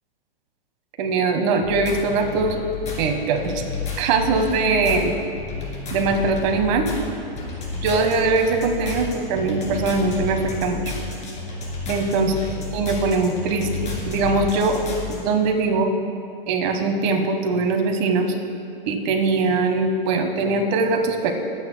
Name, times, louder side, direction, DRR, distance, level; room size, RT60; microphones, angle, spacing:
voice 1, 1.0-2.6 3.0-3.6 4.0-5.1 5.9-6.9 7.7-10.8 11.9-14.8 15.1-15.9 16.5-18.3 18.9-21.3, right 3 dB, 50° right, 4 dB, 1.4 m, -21 dB
sound 1, 1.6-15.2, left 4 dB, 25° left, 2.4 m, -31 dB
21.0 x 8.4 x 2.2 m, 2.4 s
hypercardioid pair, 125°, 29 cm